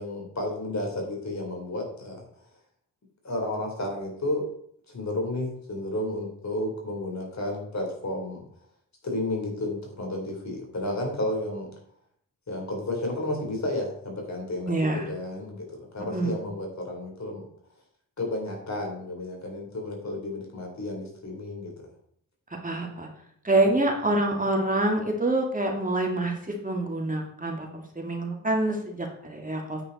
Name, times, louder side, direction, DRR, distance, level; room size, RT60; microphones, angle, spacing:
voice 1, 0.0-2.3 3.2-4.4 4.9-8.4 9.0-11.7 12.5-17.5 18.2-21.7, left 1 dB, 55° left, 1 dB, 4.2 m, -32 dB
voice 2, 14.7-15.1 16.1-16.3 22.6-23.1 23.4-29.8, right 2 dB, 25° right, 1 dB, 2.4 m, -26 dB
9.3 x 8.7 x 4.3 m, 0.65 s
cardioid pair, 70°, 34 cm